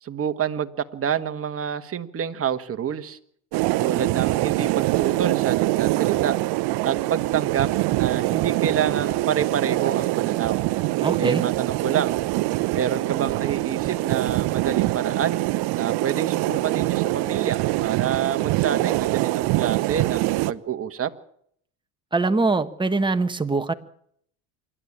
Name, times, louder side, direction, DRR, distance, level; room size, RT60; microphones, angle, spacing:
voice 1, 0.0-3.2 3.8-6.4 6.8-7.7 8.0-10.6 11.2-12.2 12.7-15.4 15.8-21.1, right 8 dB, 30° right, 8 dB, 1.5 m, -27 dB
sound 1, 3.5-20.5, right 19 dB, 60° right, 0.9 m, -24 dB
voice 2, 11.0-11.4 22.1-23.7, right 3 dB, 10° right, 7 dB, 1.4 m, -23 dB
26.0 x 11.5 x 8.7 m, 0.67 s
supercardioid pair, 95°, 44 cm